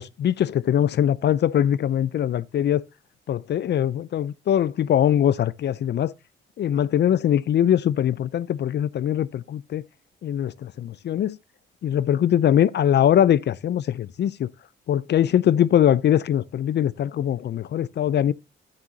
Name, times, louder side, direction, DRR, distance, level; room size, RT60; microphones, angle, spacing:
voice 1, 0.0-2.8 3.3-6.1 6.6-9.8 10.2-11.4 11.8-14.5 14.9-18.3, left 10 dB, 55° left, 0.4 m, -22 dB
9.4 x 9.1 x 2.6 m
cardioid pair, 75°, 21 cm